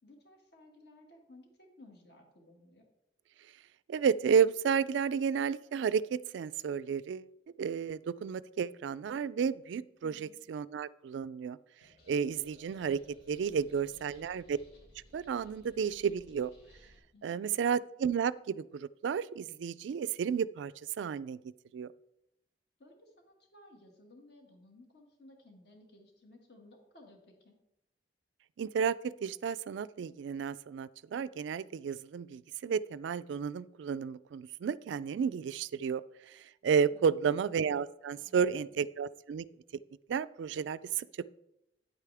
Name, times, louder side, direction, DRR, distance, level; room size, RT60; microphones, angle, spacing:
voice 1, 0.0-2.9 10.0-10.4 13.7-14.2 17.1-17.3 22.8-27.6 36.9-37.4 38.1-38.8, left 2 dB, 60° left, 2 dB, 1.9 m, -58 dB
voice 2, 3.9-7.3 7.6-11.6 12.1-13.0 13.3-14.6 15.1-16.5 17.2-20.7 21.0-21.4 21.7-21.9 28.6-39.5 40.1-41.1, right 7 dB, 80° right, 17 dB, 0.3 m, -32 dB
sound 1, 11.8-17.0, equal, 80° left, 3.2 m, -60 dB
9.2 x 8.3 x 3.4 m, 0.82 s
head